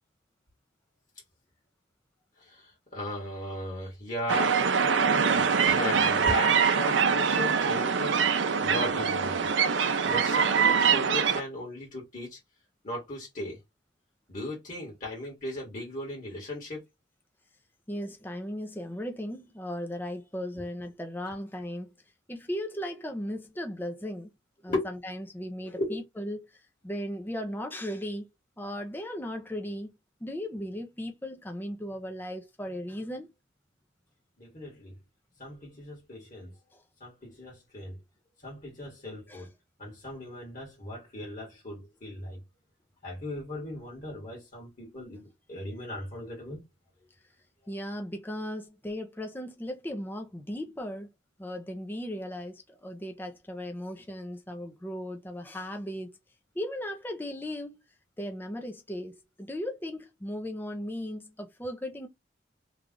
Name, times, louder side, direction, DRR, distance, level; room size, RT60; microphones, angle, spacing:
voice 1, 2.4-4.6 5.3-9.5 10.0-12.4 12.8-13.6 14.3-16.8 24.7-24.9 25.7-26.0 34.4-35.0 35.4-36.5 37.0-38.0 38.4-39.5 39.8-42.4 43.0-46.6, left 1 dB, 45° left, 1.7 m, -37 dB
sound 1, 4.3-11.4, right 6 dB, 75° right, 0.5 m, -24 dB
voice 2, 17.9-21.9 22.3-24.3 24.6-28.3 28.6-33.3 36.7-36.8 39.3-39.5 47.7-51.1 51.4-56.1 56.5-57.8 58.2-62.1, equal, 10° left, 0.6 m, -37 dB
3.2 x 2.4 x 3.7 m
head